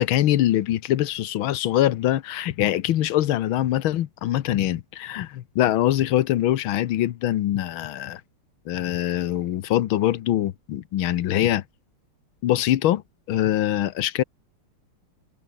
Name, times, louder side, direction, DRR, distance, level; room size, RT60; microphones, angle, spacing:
voice 1, 0.0-8.2 8.7-11.6 12.4-13.0 13.3-14.2, left 13 dB, 70° left, 1.7 m, -23 dB
omnidirectional pair, 2.4 m